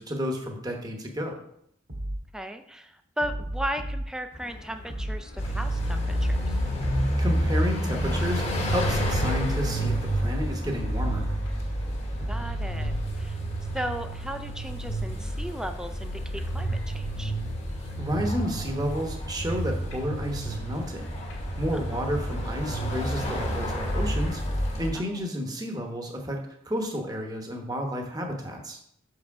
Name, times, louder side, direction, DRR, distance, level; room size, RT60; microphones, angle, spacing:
voice 1, 0.0-1.4 7.2-8.4 8.7-11.3 18.0-21.1 21.6-24.4 24.8-26.4 26.6-28.8, equal, 20° right, 2 dB, 1.0 m, -31 dB
sound 1, 1.9-2.2 3.2-4.1 4.9-5.2 6.2-7.1 7.9-8.2 9.2-10.1 10.9-11.2 12.2-13.1, right 1 dB, 50° right, 1.6 m, -33 dB
voice 2, 2.3-6.6 12.3-13.4 13.7-17.3 21.7-22.0 24.9-25.2, equal, 5° right, 7 dB, 0.4 m, -36 dB
sound 2, 4.3-23.8, left 1 dB, 75° left, 2.0 m, -47 dB
sound 3, 5.4-24.9, equal, 30° left, 1.0 m, -29 dB
6.3 x 4.8 x 4.7 m, 0.72 s
head